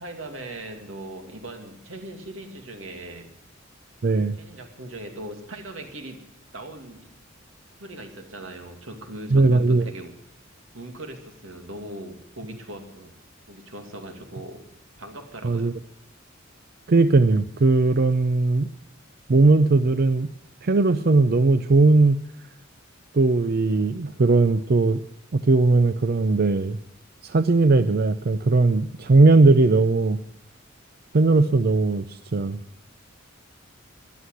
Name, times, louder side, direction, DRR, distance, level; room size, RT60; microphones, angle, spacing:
voice 1, 0.0-3.3 4.4-6.2 6.5-7.1 7.8-10.1 10.7-13.1 13.5-14.6 15.0-15.7, right 1 dB, 85° right, 4 dB, 2.5 m, -39 dB
voice 2, 4.0-4.4 9.3-9.8 15.4-15.7 16.9-18.7 19.3-20.3 20.6-22.2 23.1-25.0 25.3-26.8 27.2-30.2 31.1-32.6, right 3 dB, 50° right, 11 dB, 0.5 m, -19 dB
14.0 x 11.5 x 7.9 m, 0.71 s
head